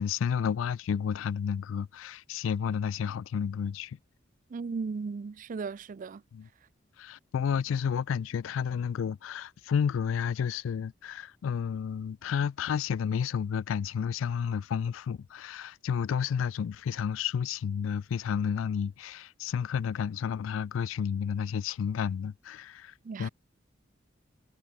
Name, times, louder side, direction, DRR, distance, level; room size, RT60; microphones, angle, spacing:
voice 1, 0.0-4.0 6.3-6.5 7.0-23.3, left 7 dB, 80° left, 0.3 m, -31 dB
voice 2, 4.5-6.2 23.0-23.3, right 4 dB, 40° right, 0.4 m, -36 dB
head